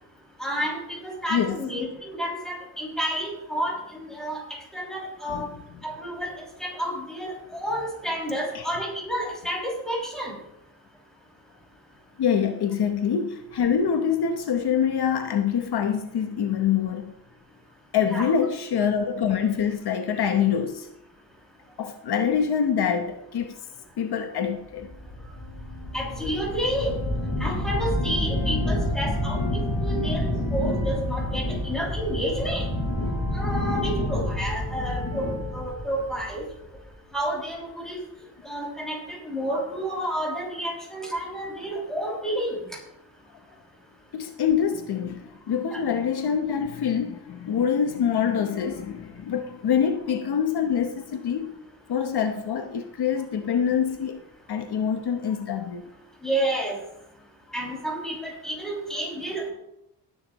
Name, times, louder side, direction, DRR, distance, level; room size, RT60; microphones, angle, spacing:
voice 1, 0.4-4.4 4.7-5.5 5.8-10.3 18.0-18.3 25.9-27.0 27.4-32.6 33.3-36.4 37.1-38.0 38.4-42.6 45.7-45.8 56.2-56.8 57.5-59.5, right 1 dB, ahead, 5.9 m, -30 dB
voice 2, 12.2-17.1 17.9-20.9 21.8-23.6 24.0-24.9 44.1-51.5 51.9-54.2 54.5-55.9, left 7 dB, 75° left, 1.0 m, -25 dB
sound 1, 24.8-36.9, left 1 dB, 45° left, 4.6 m, -28 dB
18.5 x 10.5 x 3.0 m
wide cardioid pair, 130°, 39 cm